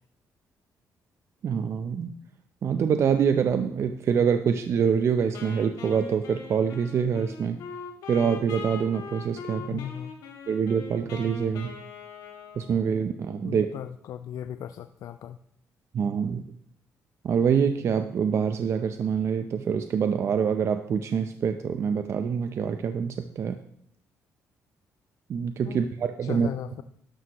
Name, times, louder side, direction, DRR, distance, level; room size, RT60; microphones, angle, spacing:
voice 1, 1.4-2.1 2.6-7.6 8.1-9.8 10.5-11.7 12.6-13.7 15.9-16.4 17.2-23.6 25.3-26.5, right 7 dB, 50° right, 8 dB, 0.5 m, -25 dB
Wind instrument woodwind instrument, 5.3-13.3, left 5 dB, 85° left, 2.2 m, -41 dB
voice 2, 9.6-10.1 13.4-15.4 25.6-25.8 26.2-26.8, left 10 dB, 70° left, 10 dB, 0.4 m, -37 dB
12.0 x 11.5 x 3.0 m, 0.67 s
cardioid pair, 140°, 6 cm